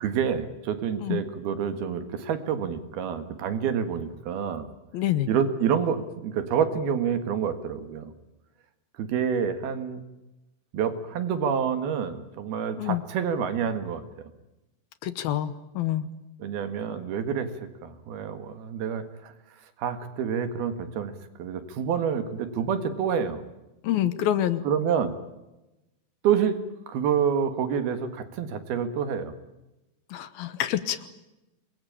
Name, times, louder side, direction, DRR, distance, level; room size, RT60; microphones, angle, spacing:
voice 1, 0.0-4.7 5.3-8.1 9.0-10.0 10.7-14.3 16.4-17.5 17.8-19.3 19.8-21.1 21.4-23.4 24.7-25.1 26.2-26.6 26.9-29.3, right 7 dB, 70° right, 9 dB, 3.6 m, -28 dB
voice 2, 4.9-5.3 12.8-13.0 15.0-16.1 23.8-24.6 30.1-31.0, left 12 dB, 70° left, 13 dB, 2.7 m, -27 dB
27.0 x 21.5 x 8.8 m, 1.0 s
omnidirectional pair, 4.8 m